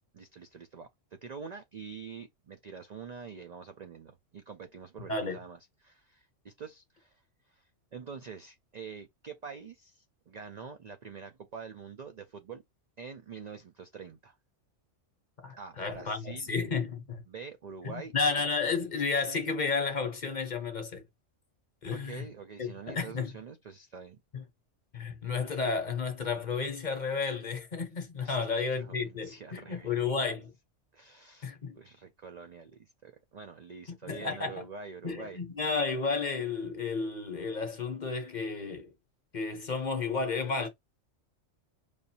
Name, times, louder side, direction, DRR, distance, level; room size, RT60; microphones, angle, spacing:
voice 1, 0.1-7.2 7.5-12.6 13.0-14.4 15.6-16.5 17.3-18.1 21.9-24.2 28.2-30.1 30.9-35.4, right 5 dB, 60° right, 0.4 m, -46 dB
voice 2, 15.4-17.2 17.8-21.0 21.8-22.2 22.6-23.3 24.3-24.4 24.9-30.5 31.4-31.8 33.9-34.6 35.0-38.9 39.3-40.7, left 4 dB, 40° left, 0.9 m, -32 dB
5.0 x 2.6 x 2.7 m
omnidirectional pair, 1.3 m